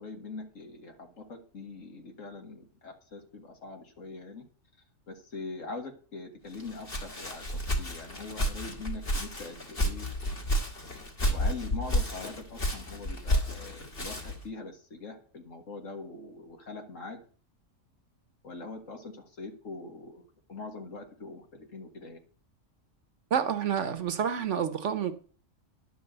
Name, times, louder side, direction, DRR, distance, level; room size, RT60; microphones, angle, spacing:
voice 1, 0.0-4.4 5.1-10.1 11.3-17.2 18.4-20.2 20.5-22.2, left 3 dB, 70° left, 2.0 m, -43 dB
Walk footsteps, 6.5-14.5, equal, 45° left, 2.6 m, -31 dB
voice 2, 23.3-25.1, right 8 dB, 65° right, 1.4 m, -28 dB
11.5 x 5.5 x 7.8 m
omnidirectional pair, 1.4 m